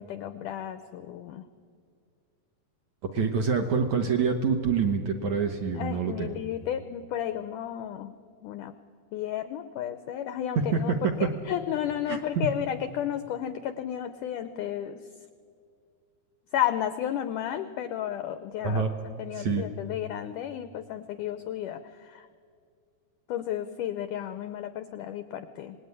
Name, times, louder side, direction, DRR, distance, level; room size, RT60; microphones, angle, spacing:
voice 1, 0.0-1.4 5.8-8.1 8.4-8.7 9.1-15.0 16.5-21.8 22.1-22.3 23.3-25.8, left 10 dB, 90° left, 11 dB, 1.8 m, -33 dB
voice 2, 3.1-6.3 10.6-11.3 12.1-12.5 18.6-18.9 19.3-19.7, right 5 dB, 65° right, 4 dB, 2.0 m, -26 dB
26.0 x 19.0 x 9.7 m, 2.2 s
omnidirectional pair, 4.7 m